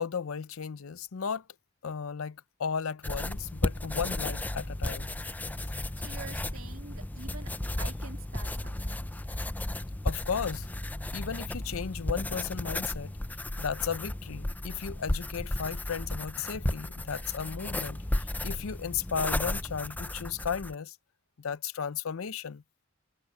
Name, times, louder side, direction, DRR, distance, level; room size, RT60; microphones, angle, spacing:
voice 1, 0.0-1.4 1.8-5.2 10.0-10.7 11.1-13.1 13.6-20.9 21.4-22.6, left 6 dB, 80° left, 0.6 m, -35 dB
sound 1, 3.0-20.7, left 1 dB, 10° left, 0.4 m, -34 dB
voice 2, 6.0-9.1, right 5 dB, 80° right, 2.6 m, -47 dB
head